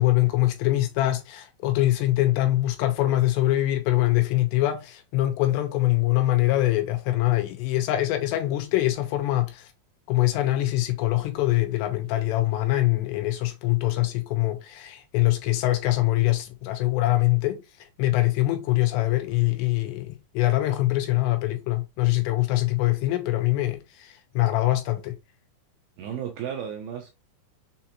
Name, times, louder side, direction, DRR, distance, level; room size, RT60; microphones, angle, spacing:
voice 1, 0.0-9.7 10.1-17.6 18.0-25.1, left 16 dB, 85° left, 3.0 m, -23 dB
voice 2, 26.0-27.1, right 9 dB, 85° right, 2.3 m, -33 dB
6.6 x 2.5 x 2.9 m
omnidirectional pair, 4.9 m